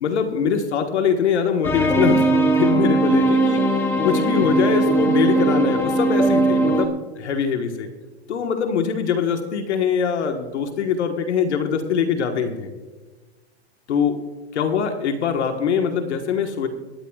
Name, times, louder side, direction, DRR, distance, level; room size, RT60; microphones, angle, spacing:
voice 1, 0.0-3.7 4.0-7.9 8.3-12.7 13.9-14.2 14.5-16.7, left 7 dB, 85° left, 5 dB, 1.5 m, -23 dB
sound 1, 1.6-6.9, right 2 dB, 5° left, 0.7 m, -19 dB
25.5 x 10.0 x 2.4 m, 1.3 s
supercardioid pair, 155°, 33 cm